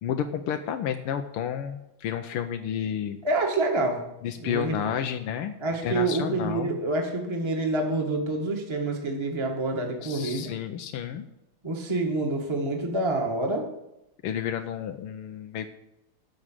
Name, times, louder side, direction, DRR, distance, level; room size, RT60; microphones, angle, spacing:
voice 1, 0.0-3.2 4.2-5.5 5.8-6.8 10.0-11.3 14.2-15.7, left 9 dB, 85° left, 6 dB, 1.6 m, -31 dB
voice 2, 3.2-4.0 4.4-4.9 5.6-10.5 11.6-13.6, right 2 dB, 15° right, 1 dB, 1.4 m, -27 dB
11.0 x 6.6 x 7.4 m, 0.91 s
omnidirectional pair, 2.4 m